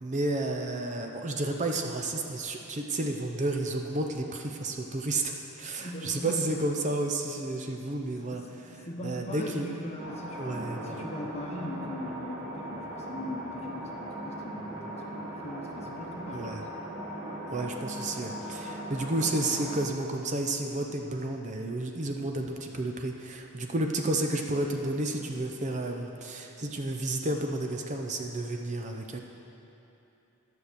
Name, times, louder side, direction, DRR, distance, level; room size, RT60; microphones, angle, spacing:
voice 1, 0.0-8.4 9.0-9.7 10.4-11.1 16.3-16.6 17.5-29.2, right 2 dB, 35° right, 3 dB, 0.6 m, -31 dB
voice 2, 5.8-6.5 8.1-16.7, left 1 dB, 30° left, 0 dB, 1.0 m, -40 dB
sound 1, 10.0-19.9, right 1 dB, 15° right, 1.8 m, -39 dB
11.5 x 6.4 x 6.8 m, 2.9 s
head